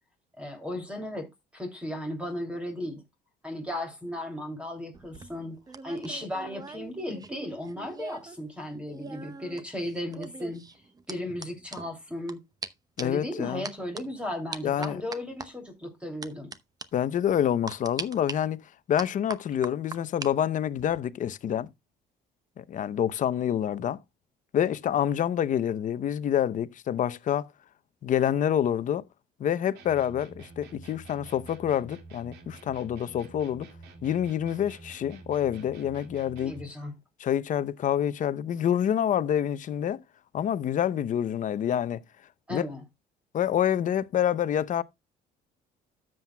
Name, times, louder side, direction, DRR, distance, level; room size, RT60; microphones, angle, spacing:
voice 1, 0.4-1.3 1.5-3.0 3.4-10.6 11.1-12.4 13.0-16.5 36.4-36.9 42.5-42.8, left 1 dB, 5° right, 2.7 m, -35 dB
sound 1, 4.9-8.4 8.6-12.3 12.6-12.7 13.0-13.2 13.6-14.0 14.5-15.5 16.2-16.6 16.8-16.9 17.7-18.3 19.0-20.3 20.6-21.0, right 4 dB, 20° right, 0.9 m, -40 dB
voice 2, 13.0-13.7 14.6-15.0 16.9-18.6 18.9-21.7 22.6-24.0 24.5-27.5 28.0-29.0 29.4-33.7 34.0-36.5 37.2-40.0 40.3-42.0 42.5-42.6 43.3-44.8, left 10 dB, 50° left, 0.7 m, -27 dB
sound 2, 29.7-36.7, right 3 dB, 80° right, 2.1 m, -48 dB
13.0 x 7.7 x 2.2 m
cardioid pair, 110°, 17 cm